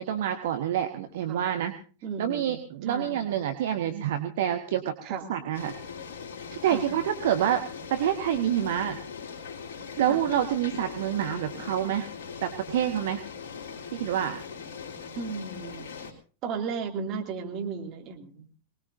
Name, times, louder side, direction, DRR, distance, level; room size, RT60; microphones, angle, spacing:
voice 1, 0.0-1.7 2.2-4.9 5.3-5.7 6.5-7.6 7.9-9.0 10.0-12.1 12.4-13.2 13.9-14.4, right 10 dB, 55° right, 7 dB, 1.1 m, -27 dB
voice 2, 2.0-3.2 5.0-5.2 6.6-7.0 10.0-10.2 11.5-11.6 15.1-15.9 16.4-18.6, right 5 dB, 35° right, 3 dB, 2.5 m, -35 dB
sound 1, 5.5-16.1, left 6 dB, 55° left, 3.4 m, -40 dB
23.5 x 20.0 x 2.6 m, 0.38 s
figure-of-eight pair, 90°, 0 cm